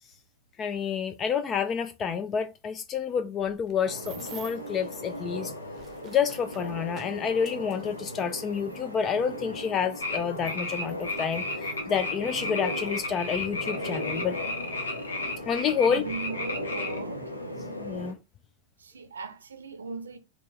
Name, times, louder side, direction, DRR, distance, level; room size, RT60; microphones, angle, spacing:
voice 1, 0.6-5.5 6.0-14.4 15.5-16.0 17.8-18.2, left 7 dB, 25° left, 0.3 m, -29 dB
sound 1, 3.4-4.7 5.5-8.8 9.6-9.7 10.3-11.8 12.6-12.7 13.1-13.4, right 6 dB, 30° right, 0.7 m, -50 dB
sound 2, 3.8-18.1, left 1 dB, 90° left, 0.8 m, -37 dB
sound 3, 10.0-17.0, left 3 dB, 70° left, 1.1 m, -34 dB
voice 2, 15.9-17.4 18.8-20.2, right 5 dB, 70° right, 0.5 m, -39 dB
3.7 x 2.3 x 3.7 m
figure-of-eight pair, 90°, 0 cm